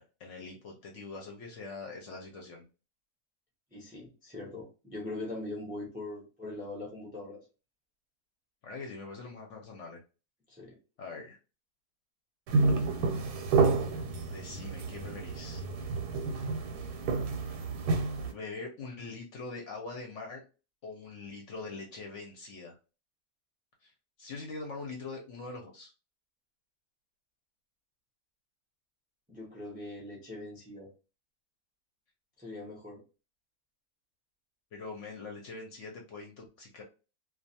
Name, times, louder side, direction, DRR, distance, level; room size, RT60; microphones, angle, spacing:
voice 1, 0.0-2.6 8.6-10.0 11.0-11.4 14.3-15.6 17.0-17.1 18.3-20.4 20.8-22.8 23.8-23.9 24.2-25.9 34.7-36.8, left 3 dB, 65° left, 1 dB, 0.8 m, -43 dB
voice 2, 3.7-7.4 10.5-10.8 29.3-30.9 32.4-33.0, left 2 dB, 10° right, -2 dB, 0.3 m, -41 dB
sound 1, 12.5-18.3, right 4 dB, 90° right, 1.1 m, -30 dB
2.3 x 2.3 x 2.6 m, 0.32 s
omnidirectional pair, 1.7 m